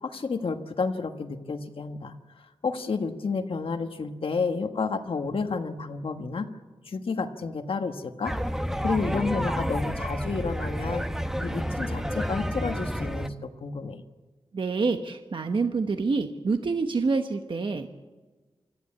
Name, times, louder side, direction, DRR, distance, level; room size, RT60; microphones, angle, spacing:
voice 1, 0.0-6.5 6.8-8.3 8.8-11.1 11.4-14.0, left 4 dB, 70° left, 6 dB, 1.4 m, -31 dB
sound 1, 8.3-13.3, equal, 5° right, 1.0 m, -30 dB
voice 2, 14.5-17.9, right 4 dB, 60° right, 6 dB, 1.1 m, -27 dB
25.0 x 14.0 x 8.6 m, 1.3 s
wide cardioid pair, 80°, 10 cm